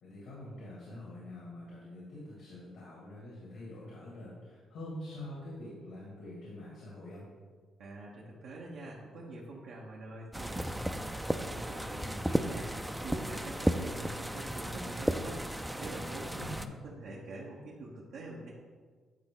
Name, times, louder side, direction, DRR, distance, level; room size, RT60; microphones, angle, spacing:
voice 1, 0.0-7.3 16.4-16.7, left 1 dB, 80° left, -5 dB, 2.0 m, -45 dB
voice 2, 7.8-18.5, right 2 dB, 80° right, -4 dB, 1.1 m, -45 dB
sound 1, 10.3-16.7, right 1 dB, 5° right, 0.4 m, -34 dB
9.6 x 4.0 x 3.8 m, 1.5 s
cardioid pair, 90°, 0 cm